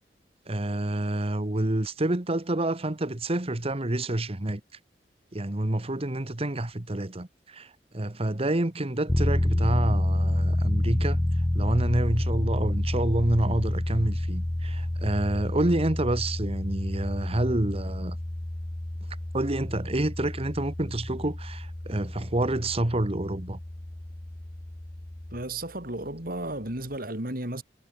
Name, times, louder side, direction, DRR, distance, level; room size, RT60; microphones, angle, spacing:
voice 1, 0.5-4.6 5.3-11.2 11.5-18.2 19.3-23.6, right 1 dB, 35° right, 1.4 m, -28 dB
sound 1, 9.1-25.4, left 1 dB, 10° left, 0.3 m, -29 dB
voice 2, 25.3-27.6, right 1 dB, 55° right, 7.3 m, -33 dB
head